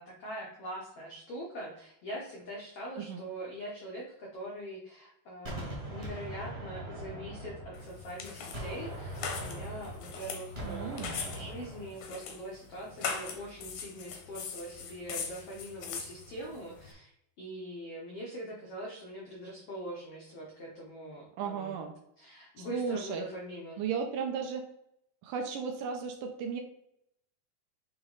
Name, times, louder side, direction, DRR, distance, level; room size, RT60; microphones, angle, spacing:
voice 1, 0.0-17.1 17.4-21.8 22.2-23.8, right 1 dB, 90° left, -3 dB, 1.3 m, -43 dB
Gunshot gunfire, 5.4-8.2 8.5-12.1, right 1 dB, 30° right, 0.8 m, -41 dB
sound 1, 7.7-16.9, left 5 dB, 70° left, 1.7 m, -41 dB
voice 2, 10.6-11.2 21.4-21.9 22.6-23.3 23.8-24.7 25.2-26.6, right 6 dB, 80° right, 4 dB, 2.0 m, -35 dB
8.8 x 3.0 x 3.9 m, 0.76 s
omnidirectional pair, 4.5 m